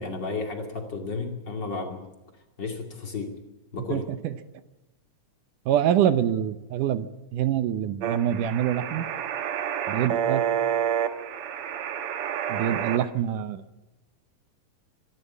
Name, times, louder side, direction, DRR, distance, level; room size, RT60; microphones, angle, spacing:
voice 1, 0.0-2.0 2.6-3.3 3.7-4.1, left 4 dB, 35° left, 3 dB, 2.9 m, -32 dB
voice 2, 3.9-4.4 5.7-9.1 9.9-10.5 12.5-13.6, right 10 dB, 75° right, 13 dB, 2.4 m, -25 dB
sound 1, 8.0-13.0, right 9 dB, 60° right, 1.6 m, -29 dB
25.0 x 12.5 x 8.6 m, 1.0 s
omnidirectional pair, 3.7 m